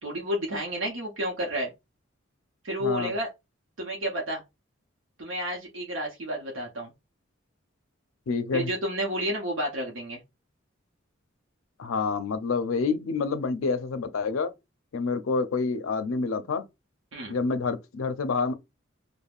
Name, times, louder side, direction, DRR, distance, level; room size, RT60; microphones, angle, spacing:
voice 1, 0.0-1.7 2.6-3.3 3.8-4.4 5.2-6.9 8.5-10.2 17.1-17.3, equal, 75° right, 0.7 m, -31 dB
voice 2, 2.8-3.1 8.3-8.7 11.8-14.5 14.9-16.6 17.3-18.5, left 4 dB, 90° left, 0.4 m, -28 dB
3.4 x 2.1 x 2.3 m
head